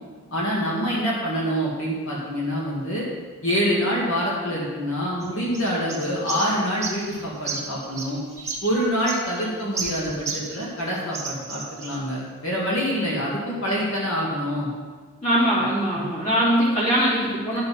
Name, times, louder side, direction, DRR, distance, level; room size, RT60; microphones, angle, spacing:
voice 1, 0.3-3.0 3.4-8.2 8.6-14.7 15.9-16.0, equal, 65° left, -5 dB, 2.3 m, -26 dB
sound 1, 5.2-10.8 11.1-12.0, right 4 dB, 15° right, 1.5 m, -33 dB
voice 2, 15.2-17.6, equal, 35° left, -7 dB, 3.1 m, -21 dB
11.0 x 6.8 x 5.6 m, 1.5 s
head